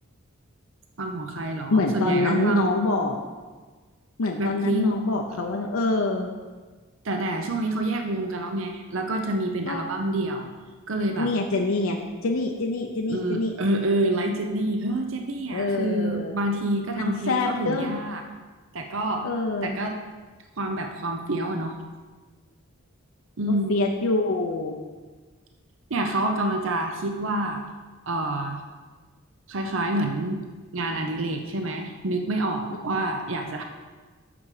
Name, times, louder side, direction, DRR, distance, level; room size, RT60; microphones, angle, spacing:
voice 1, 1.0-2.7 4.4-5.0 7.0-10.5 10.9-11.3 13.1-18.2 18.7-19.3 19.6-19.9 20.6-21.7 23.4-23.8 25.9-27.6 28.1-28.6 29.5-30.4 30.7-33.6, right 1 dB, 60° right, 4 dB, 0.7 m, -27 dB
voice 2, 1.7-3.2 4.2-6.3 9.7-9.8 11.2-13.5 15.5-16.4 16.9-17.9 19.2-19.8 23.5-24.8, left 2 dB, 75° left, 1 dB, 0.7 m, -25 dB
8.6 x 6.8 x 4.9 m, 1.4 s
head